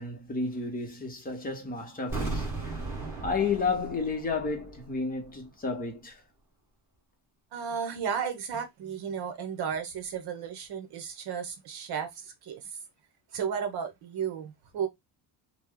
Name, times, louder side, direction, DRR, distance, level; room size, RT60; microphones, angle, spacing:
voice 1, 0.0-2.8 3.2-6.2, left 4 dB, 20° left, 0.6 m, -32 dB
sound 1, 2.1-5.0 5.2-5.3, right 3 dB, 5° right, 1.0 m, -36 dB
Mallet percussion, 3.4-5.8, right 6 dB, 35° right, 1.7 m, -56 dB
voice 2, 7.5-12.7 13.3-14.9, right 7 dB, 60° right, 0.9 m, -34 dB
3.1 x 2.0 x 3.5 m
cardioid pair, 180°, 45 cm